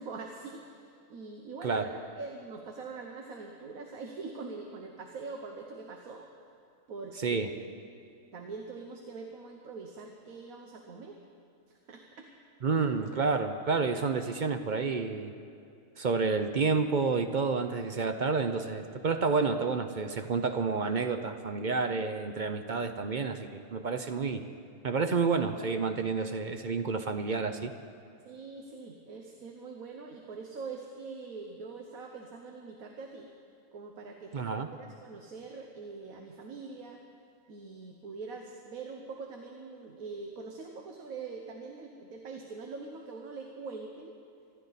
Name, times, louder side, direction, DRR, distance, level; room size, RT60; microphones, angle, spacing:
voice 1, 0.0-6.2 6.9-7.5 8.3-11.2 11.9-12.3 28.2-33.3 33.7-37.0 37.5-44.2, right 4 dB, 80° right, 2 dB, 1.5 m, -43 dB
voice 2, 12.6-15.3 16.0-24.4 24.8-27.7 34.3-34.7, right 4 dB, 45° right, 7 dB, 0.6 m, -29 dB
25.0 x 12.0 x 4.1 m, 2.5 s
omnidirectional pair, 1.5 m